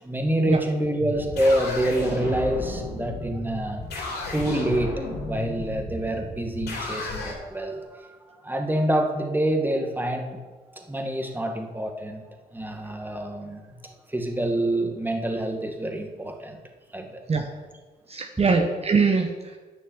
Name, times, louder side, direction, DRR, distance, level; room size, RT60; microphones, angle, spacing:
voice 1, 0.0-3.9 4.3-10.4 10.7-12.2 12.5-16.6 16.9-17.2, right 1 dB, 10° right, 3 dB, 1.8 m, -27 dB
sound 1, 1.0-7.3, left 2 dB, 80° left, 3.3 m, -33 dB
voice 2, 18.1-19.6, right 4 dB, 40° right, 3 dB, 1.1 m, -22 dB
10.0 x 6.5 x 7.2 m, 1.3 s
cardioid pair, 80°, 16 cm